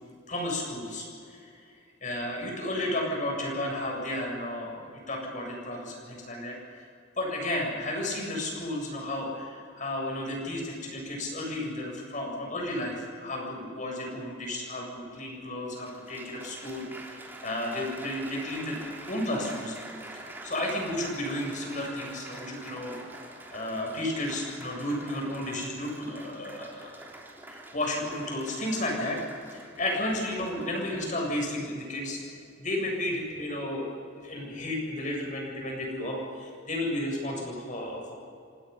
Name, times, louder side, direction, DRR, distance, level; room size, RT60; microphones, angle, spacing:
voice 1, 0.3-1.7 2.0-6.9 7.2-19.8 20.1-23.0 23.5-27.1 27.5-29.2 29.5-32.2 32.6-38.1, left 1 dB, 40° left, 0 dB, 7.8 m, -33 dB
Applause, 15.0-15.1 15.8-31.7 32.4-32.8, right 1 dB, 10° right, 3.4 m, -46 dB
29.0 x 26.0 x 5.7 m, 2.3 s
head